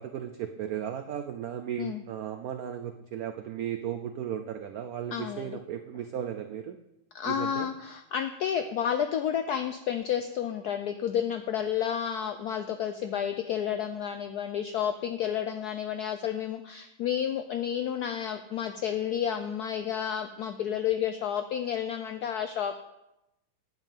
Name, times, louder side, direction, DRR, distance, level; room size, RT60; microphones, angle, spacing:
voice 1, 0.0-6.8 7.2-7.7, right 9 dB, 85° right, 7 dB, 0.7 m, -35 dB
voice 2, 5.1-5.6 7.1-22.7, left 9 dB, 85° left, 8 dB, 0.8 m, -31 dB
9.6 x 5.4 x 7.4 m, 0.90 s
omnidirectional pair, 2.3 m